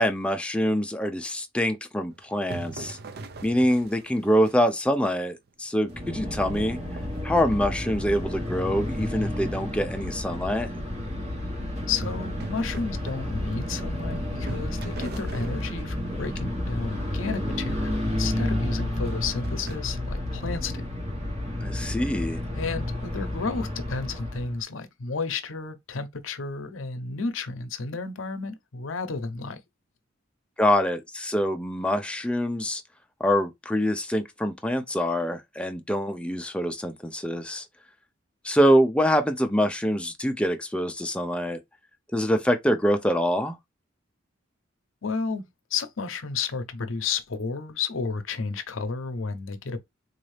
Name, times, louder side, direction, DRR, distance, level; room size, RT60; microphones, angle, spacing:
voice 1, 0.0-3.0 3.4-6.8 7.2-10.7 21.6-22.4 30.6-32.8 33.2-37.6 38.4-41.6 42.1-43.6, equal, 5° left, 0.5 m, -25 dB
sound 1, 2.1-4.9 5.5-5.6 6.1-8.4 12.0-14.1 14.5-16.2 19.0-19.8, right 3 dB, 50° right, 0.5 m, -41 dB
sound 2, 5.9-24.6, left 1 dB, 35° right, 1.2 m, -31 dB
voice 2, 11.9-20.8 22.6-29.6 45.0-45.4 45.7-49.8, left 4 dB, 75° left, 0.7 m, -32 dB
3.9 x 2.6 x 3.2 m
head